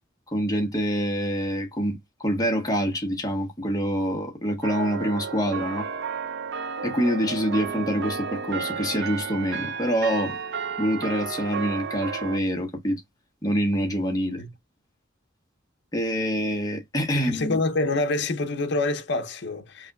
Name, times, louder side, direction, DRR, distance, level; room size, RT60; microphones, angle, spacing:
voice 1, 0.3-5.9 6.8-10.4 10.8-13.0 13.4-14.4 15.9-17.6, equal, 20° left, 1.2 m, -26 dB
sound 1, 4.6-12.4, right 6 dB, 60° right, 0.5 m, -32 dB
voice 2, 17.1-19.9, left 2 dB, 60° left, 0.8 m, -26 dB
5.4 x 2.9 x 2.3 m
head